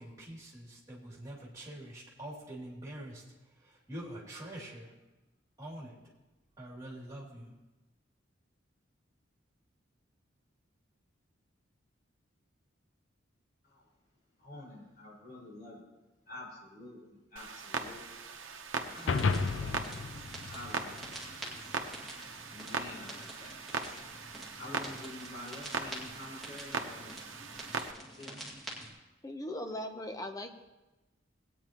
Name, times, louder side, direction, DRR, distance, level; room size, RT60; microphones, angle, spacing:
voice 1, 0.0-3.2 3.6-4.9 5.6-5.9 6.6-7.5, right 1 dB, 15° right, -4 dB, 2.8 m, -45 dB
voice 2, 14.4-15.8 16.3-18.0 18.9-20.2 20.5-21.7 22.5-23.9 24.6-27.1 28.1-28.5, left 1 dB, 50° left, -6 dB, 4.9 m, -48 dB
Clock, 17.4-27.9, right 4 dB, 80° right, 0.9 m, -40 dB
sound 1, 18.9-28.9, right 1 dB, ahead, 2.0 m, -47 dB
sound 2, 19.1-21.6, left 4 dB, 70° left, 0.5 m, -33 dB
voice 3, 29.2-30.5, left 1 dB, 20° left, 5 dB, 0.8 m, -39 dB
19.5 x 9.0 x 3.0 m, 1.1 s
head